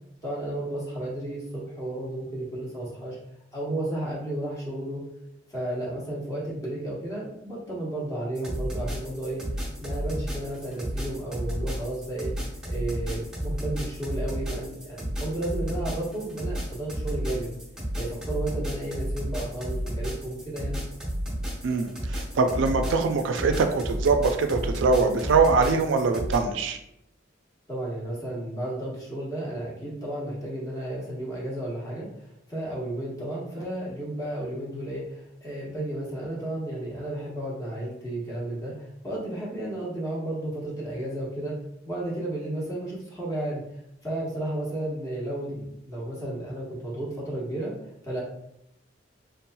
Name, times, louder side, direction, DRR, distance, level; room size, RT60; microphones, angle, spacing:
voice 1, 0.2-3.2 3.5-5.0 5.5-9.4 9.8-12.3 12.6-17.5 18.0-20.8 27.7-41.6 41.8-43.6 44.0-47.7 48.0-48.2, right 1 dB, 20° left, -5 dB, 1.0 m, -33 dB
sound 1, 8.3-26.4, equal, 5° right, 0.9 m, -32 dB
voice 2, 21.6-26.8, right 4 dB, 70° right, 7 dB, 0.3 m, -23 dB
3.5 x 2.9 x 2.2 m, 0.79 s
head